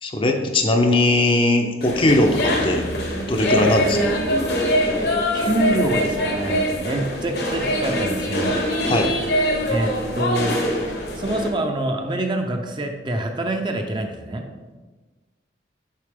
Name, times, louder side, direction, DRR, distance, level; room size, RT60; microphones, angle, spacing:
voice 1, 0.0-2.8 3.2-4.2 8.9-9.1, left 2 dB, 30° left, 3 dB, 0.6 m, -19 dB
sound 1, 1.8-11.5, equal, 65° left, 1.1 m, -23 dB
voice 2, 5.3-8.9 9.7-10.6 11.1-14.5, right 1 dB, 25° right, 4 dB, 0.5 m, -25 dB
6.6 x 5.7 x 3.5 m, 1.3 s
head